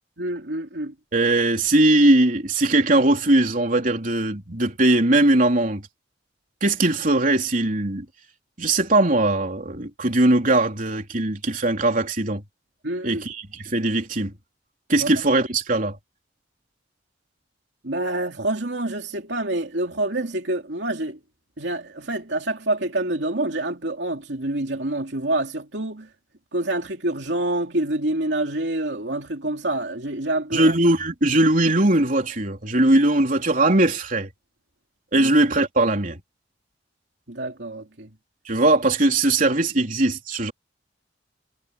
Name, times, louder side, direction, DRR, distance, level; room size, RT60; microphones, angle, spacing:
voice 1, 0.2-0.9 12.8-13.3 15.0-15.1 17.8-21.2 21.6-26.1 26.5-30.7 35.1-35.3 37.3-38.1, right 1 dB, 70° right, 2.8 m, -27 dB
voice 2, 1.1-5.8 6.6-8.1 8.6-12.4 13.0-14.3 14.9-16.0 30.5-34.3 35.1-36.2 38.5-40.5, right 2 dB, 45° right, 3.6 m, -20 dB
head